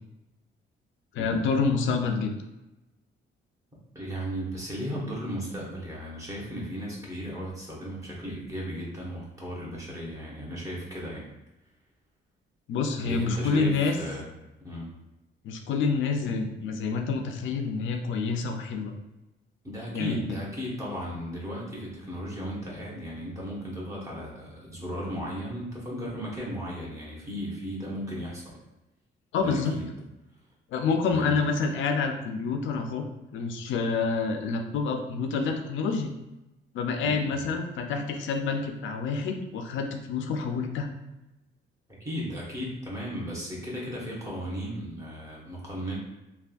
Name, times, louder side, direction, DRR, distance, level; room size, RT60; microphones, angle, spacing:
voice 1, 1.1-2.3 12.7-14.0 15.4-18.9 19.9-20.2 29.3-29.7 30.7-33.1 33.3-36.1 36.7-40.9, left 4 dB, 75° left, 4 dB, 0.4 m, -28 dB
voice 2, 3.9-11.3 13.0-14.3 14.6-14.9 19.6-28.6 29.4-29.9 31.1-31.4 37.0-37.5 42.0-45.9, equal, 15° right, -5 dB, 1.2 m, -35 dB
3.4 x 2.3 x 2.5 m, 0.98 s
cardioid pair, 90°, 20 cm